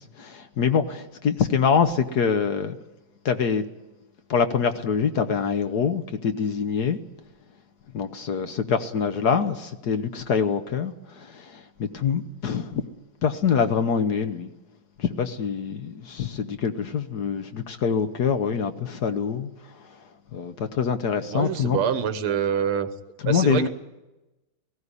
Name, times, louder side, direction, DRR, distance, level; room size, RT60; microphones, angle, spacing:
voice 1, 0.0-2.8 3.2-3.6 4.3-7.0 7.9-12.8 13.2-14.5 15.0-19.5 19.8-20.0 20.3-21.8 23.2-23.7, left 6 dB, 55° left, 1.3 m, -25 dB
voice 2, 21.3-22.9 23.3-23.7, right 8 dB, 85° right, 2.1 m, -25 dB
18.5 x 16.0 x 9.8 m
omnidirectional pair, 2.3 m